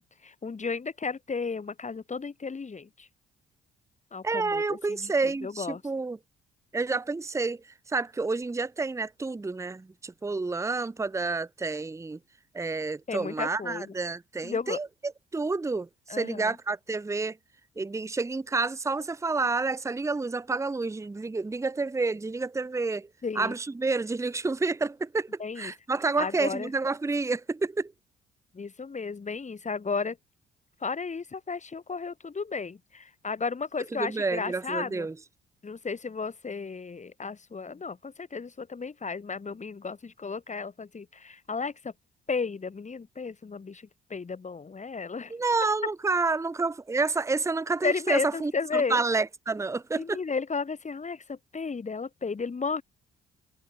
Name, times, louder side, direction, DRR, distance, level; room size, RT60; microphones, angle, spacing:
voice 1, 0.0-3.1 4.1-5.8 13.1-13.9 14.4-14.8 16.1-16.6 23.2-23.5 25.4-25.7 26.2-26.7 28.5-30.2 30.8-35.1 35.6-41.9 42.3-45.3 47.8-49.0 49.9-52.8, left 4 dB, 35° left, 3.8 m, -34 dB
voice 2, 4.2-6.2 6.7-7.6 7.9-12.2 12.5-17.4 17.8-23.1 23.4-27.9 33.9-35.2 45.3-50.2, right 3 dB, 15° right, 0.7 m, -29 dB
supercardioid pair, 55°, 21 cm